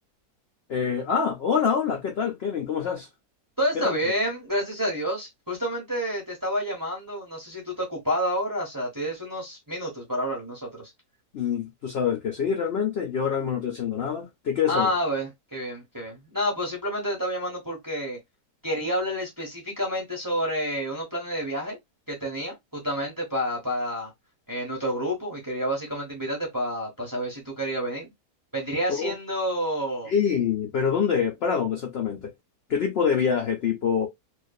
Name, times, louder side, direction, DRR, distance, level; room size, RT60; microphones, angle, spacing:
voice 1, 0.7-3.1 3.7-3.8 11.3-14.9 28.9-29.1 30.1-32.3 32.7-34.1, left 7 dB, 70° left, 0.5 m, -25 dB
voice 2, 3.6-10.9 14.7-18.2 18.6-21.8 22.1-24.1 24.5-28.1 28.5-30.1, equal, 20° right, 0.6 m, -29 dB
2.5 x 2.4 x 2.2 m
omnidirectional pair, 1.8 m